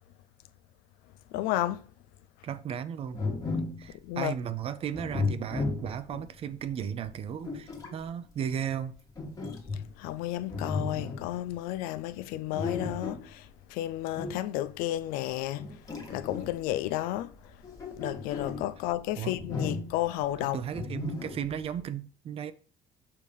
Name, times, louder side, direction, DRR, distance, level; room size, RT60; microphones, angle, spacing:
voice 1, 1.3-1.8 4.0-4.3 10.0-13.5 13.7-15.7 16.1-17.3 18.0-20.6, left 14 dB, 90° left, 0.5 m, -32 dB
voice 2, 2.4-3.2 3.8-9.0 19.2-19.4 20.4-22.5, right 8 dB, 40° right, 0.6 m, -35 dB
sound 1, 3.1-3.9 4.9-6.3 7.0-8.0 9.2-10.1 10.5-11.3 12.5-13.3 14.2-14.5 15.6-16.7 17.5-18.7 19.3-20.1 20.7-21.6, left 3 dB, 25° left, 1.4 m, -34 dB
6.5 x 2.8 x 5.3 m
cardioid pair, 130°, 14 cm